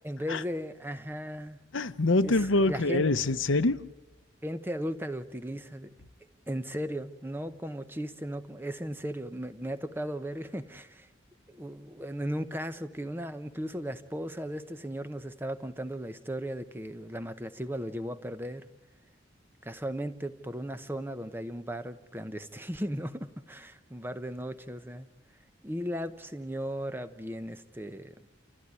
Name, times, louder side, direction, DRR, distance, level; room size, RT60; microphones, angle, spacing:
voice 1, 0.0-1.6 2.2-3.2 4.4-5.9 6.5-11.1 11.5-18.7 19.6-25.1 25.6-28.1, equal, 10° right, 0.8 m, -36 dB
voice 2, 1.7-3.8, left 2 dB, 80° left, 0.9 m, -25 dB
29.0 x 14.5 x 9.6 m
head